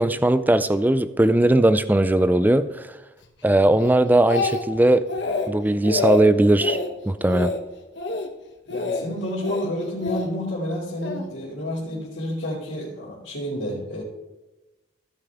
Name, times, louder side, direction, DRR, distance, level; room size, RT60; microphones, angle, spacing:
voice 1, 0.0-2.9 3.4-5.1 5.5-6.8 7.1-7.5, right 1 dB, 10° right, 12 dB, 0.3 m, -19 dB
Speech, 3.8-4.8 5.1-5.5 5.8-6.2 6.6-6.9 7.3-7.6 7.9-8.3 8.7-9.0 9.4-10.3 11.0-11.3, left 4 dB, 60° left, 1.1 m, -26 dB
voice 2, 8.7-14.0, equal, 80° left, -10 dB, 2.6 m, -30 dB
15.5 x 5.7 x 3.5 m, 1.1 s
head